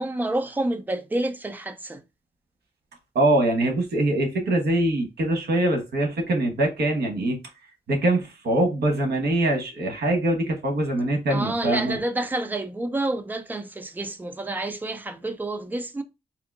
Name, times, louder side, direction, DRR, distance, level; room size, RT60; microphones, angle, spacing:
voice 1, 0.0-2.0 11.3-16.0, right 2 dB, 10° right, 0.4 m, -29 dB
voice 2, 3.1-7.4 7.9-12.0, right 1 dB, 75° right, 1.0 m, -23 dB
3.6 x 2.7 x 2.4 m
wide cardioid pair, 140°, 17 cm